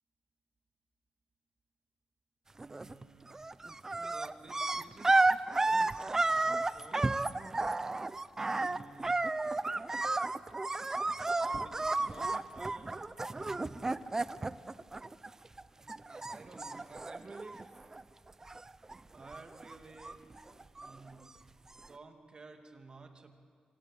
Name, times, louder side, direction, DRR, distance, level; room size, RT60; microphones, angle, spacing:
voice 1, 2.5-3.4 4.1-5.2 5.5-7.2 8.4-9.2 11.3-13.0 13.3-13.9 15.8-17.6 19.1-20.2 20.8-21.3 21.8-23.3, right 3 dB, 40° right, 4 dB, 2.6 m, -53 dB
sound 1, 2.6-3.0 3.3-15.6 15.9-18.0 18.3-19.0 19.3-21.1 21.8-21.9, right 2 dB, 20° right, 0.6 m, -32 dB
27.0 x 25.5 x 8.5 m, 2.1 s
wide cardioid pair, 140°, 2 cm